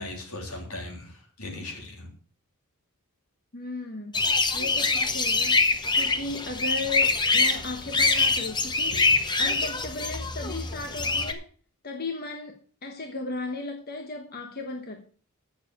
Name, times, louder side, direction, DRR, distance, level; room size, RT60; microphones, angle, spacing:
voice 1, 0.0-2.1, left 2 dB, 80° left, 2 dB, 3.5 m, -38 dB
voice 2, 3.5-4.2 4.5-5.6 5.9-11.5 11.8-15.1, left 3 dB, 45° left, 3 dB, 1.3 m, -36 dB
sound 1, 4.1-11.3, left 3 dB, 20° left, 0.9 m, -24 dB
8.8 x 6.7 x 7.8 m, 0.43 s
head